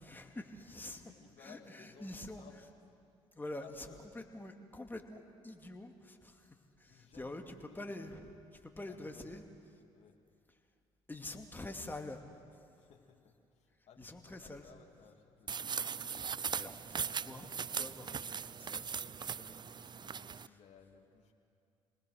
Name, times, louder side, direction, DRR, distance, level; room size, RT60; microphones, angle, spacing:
voice 1, 0.0-1.0 1.4-2.4 3.3-8.3 8.6-9.4 11.1-12.2 12.5-12.6 14.0-14.6 16.2-16.3 16.5-19.9 20.2-20.6, left 2 dB, 15° left, 3 dB, 2.6 m, -47 dB
voice 2, 0.7-2.6 3.5-4.2 6.8-8.3 8.8-9.4 9.9-10.2 12.7-15.8 19.7-21.3, left 7 dB, 55° left, 1 dB, 2.7 m, -60 dB
sound 1, 15.5-20.5, right 6 dB, 35° right, 0.5 m, -39 dB
28.0 x 20.0 x 6.5 m, 2.4 s
hypercardioid pair, 60°, 14 cm